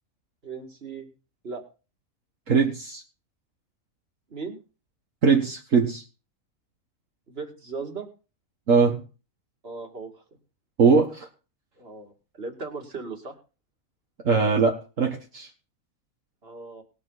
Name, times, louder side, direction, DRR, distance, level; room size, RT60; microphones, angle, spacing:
voice 1, 0.4-1.1 1.4-1.6 4.3-4.6 7.3-8.1 9.6-10.2 11.8-13.3 16.4-16.8, right 4 dB, 45° right, 4 dB, 2.6 m, -37 dB
voice 2, 2.5-3.0 5.2-6.0 8.7-9.0 10.8-11.3 14.3-15.5, right 5 dB, 65° right, 2 dB, 1.8 m, -21 dB
20.0 x 7.3 x 4.0 m, 0.34 s
omnidirectional pair, 1.4 m